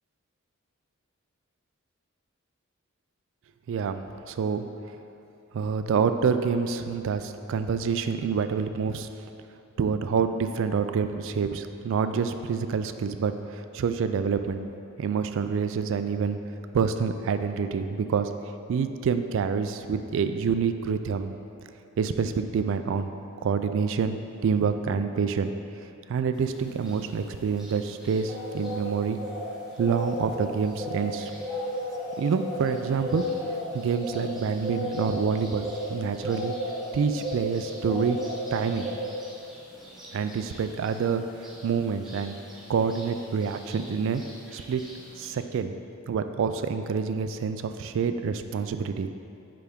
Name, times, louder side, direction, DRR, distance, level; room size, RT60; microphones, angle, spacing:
voice 1, 3.7-4.0 4.3-4.7 5.5-9.1 9.8-14.7 15.0-16.4 16.7-18.3 18.7-21.3 22.0-23.1 23.4-25.5 26.1-29.2 29.8-31.3 32.2-33.3 33.7-36.5 36.9-38.2 38.5-38.9 40.1-41.3 41.6-42.4 42.7-44.2 44.5-44.8 45.2-45.7 46.1-49.1, right 6 dB, 60° right, 9 dB, 0.3 m, -27 dB
sound 1, 26.4-45.3, equal, ahead, 1.0 m, -36 dB
8.4 x 3.4 x 3.6 m, 2.7 s
head